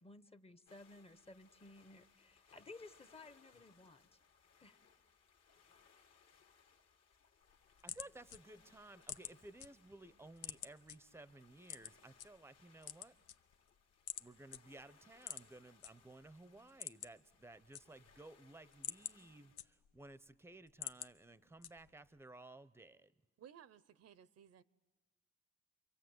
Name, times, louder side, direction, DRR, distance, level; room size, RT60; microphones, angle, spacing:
voice 1, 0.0-4.1 4.6-4.8, left 2 dB, 20° left, 0.9 m, -57 dB
sound 1, 0.7-19.6, left 6 dB, 55° left, 2.0 m, -69 dB
sound 2, 7.4-9.7 10.0-11.0 11.6-12.3 12.7-13.7 14.1-14.3 14.5-14.6 15.2-15.9 16.2-16.3 16.6-17.3 17.5-18.2 18.6-20.1 20.5-21.1 21.6-22.1, left 11 dB, 80° left, 0.8 m, -47 dB
voice 2, 7.8-13.1 14.2-23.1, right 2 dB, 10° right, 0.7 m, -57 dB
voice 3, 23.4-24.6, right 9 dB, 55° right, 0.8 m, -59 dB
29.0 x 23.5 x 8.0 m
cardioid pair, 90°, 30 cm